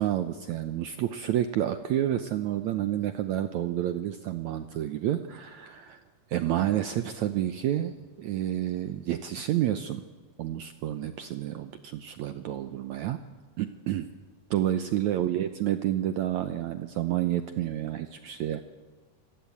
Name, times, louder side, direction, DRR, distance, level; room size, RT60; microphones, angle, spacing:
voice 1, 0.0-6.0 6.3-10.0 10.4-13.2 13.6-14.1 14.5-18.6, right 12 dB, 80° right, 10 dB, 1.6 m, -29 dB
27.0 x 19.5 x 8.6 m, 1.4 s
omnidirectional pair, 4.4 m